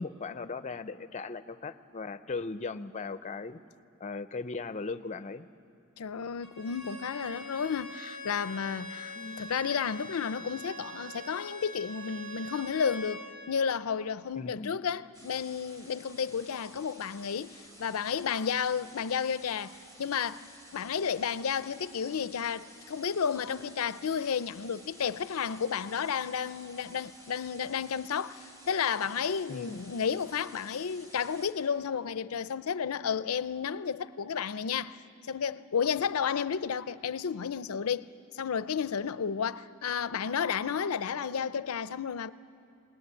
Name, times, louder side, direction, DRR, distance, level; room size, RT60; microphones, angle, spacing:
voice 1, 0.0-3.6 4.0-5.5 9.2-9.5 14.4-14.7 29.5-29.8, left 4 dB, 35° left, 0.6 m, -38 dB
voice 2, 6.0-13.2 13.5-20.5 20.7-35.0 35.3-42.3, left 7 dB, 85° left, 0.5 m, -32 dB
Bowed string instrument, 6.4-13.3, left 1 dB, 85° right, 7.9 m, -43 dB
sound 1, 15.1-31.5, equal, 20° right, 2.9 m, -53 dB
20.0 x 19.5 x 9.6 m
head